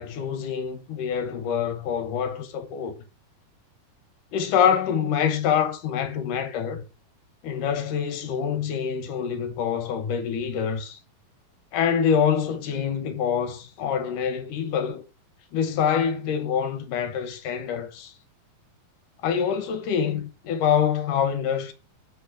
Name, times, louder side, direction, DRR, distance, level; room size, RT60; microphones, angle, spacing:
voice 1, 0.0-2.9 4.3-6.8 7.4-11.0 11.7-15.0 15.5-18.1 19.2-21.7, left 8 dB, 70° left, 2.4 m, -25 dB
7.8 x 6.5 x 4.9 m
omnidirectional pair, 4.2 m